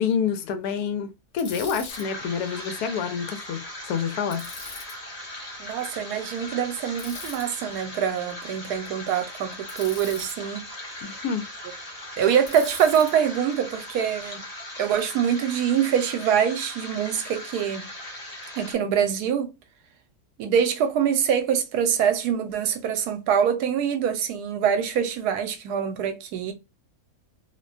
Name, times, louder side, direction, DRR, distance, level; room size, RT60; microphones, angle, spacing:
voice 1, 0.0-4.5 11.0-11.5, left 7 dB, 80° left, 1.1 m, -28 dB
Bicycle, 1.4-2.0 4.3-4.9 7.0-7.5 9.7-10.4 12.5-13.1, left 3 dB, 50° left, 1.0 m, -40 dB
sound 1, 1.9-18.7, left 1 dB, 30° left, 0.8 m, -39 dB
voice 2, 5.6-10.6 12.2-14.4 14.8-17.9 18.5-19.5 20.4-26.5, right 8 dB, 85° right, 1.1 m, -24 dB
2.8 x 2.1 x 2.4 m
omnidirectional pair, 1.7 m